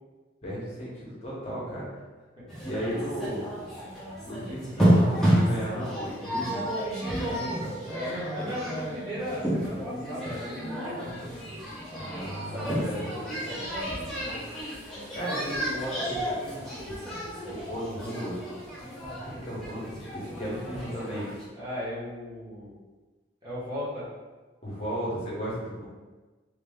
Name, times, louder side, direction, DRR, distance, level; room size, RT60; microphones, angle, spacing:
voice 1, 0.4-1.9 2.6-3.4 4.2-6.6 11.9-13.1 15.1-18.4 19.2-21.3 24.6-25.9, equal, 30° left, -7 dB, 1.0 m, -35 dB
sound 1, 2.5-21.5, equal, ahead, 0.8 m, -31 dB
voice 2, 7.2-11.1 12.5-14.4 21.5-22.7 23.4-24.1, equal, 25° right, -10 dB, 1.3 m, -37 dB
3.3 x 2.9 x 3.6 m, 1.3 s
head